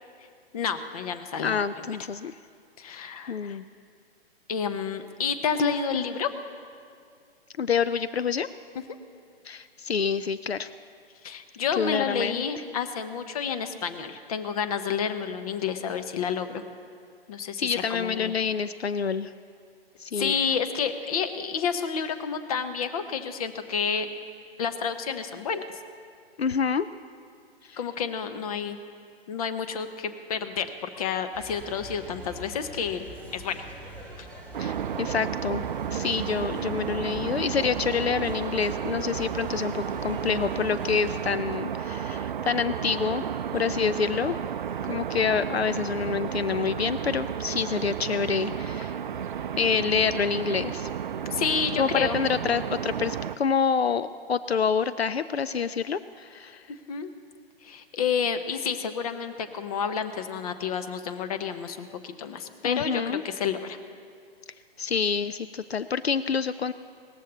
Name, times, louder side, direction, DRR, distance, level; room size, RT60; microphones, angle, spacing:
voice 1, 0.5-2.0 2.8-3.6 4.5-6.3 11.2-16.6 17.3-18.3 20.2-24.1 24.6-25.6 27.8-28.8 29.3-33.6 34.2-34.3 43.5-44.0 51.3-52.2 56.7-57.1 57.6-63.8, left 6 dB, 35° left, 9 dB, 1.0 m, -30 dB
voice 2, 1.4-2.3 3.3-3.6 7.6-8.5 9.4-10.7 11.8-12.4 17.6-19.3 20.0-20.3 26.4-26.9 27.7-27.8 34.6-35.6 35.9-43.2 43.5-44.4 44.9-49.0 49.6-50.9 51.8-56.6 62.6-63.2 64.8-66.7, left 6 dB, 80° left, 14 dB, 0.5 m, -27 dB
sound 1, 31.3-41.3, right 1 dB, 5° left, 1.5 m, -44 dB
sound 2, 34.5-53.4, right 8 dB, 55° right, 0.5 m, -32 dB
18.0 x 14.0 x 4.1 m, 2.3 s
figure-of-eight pair, 125°, 31 cm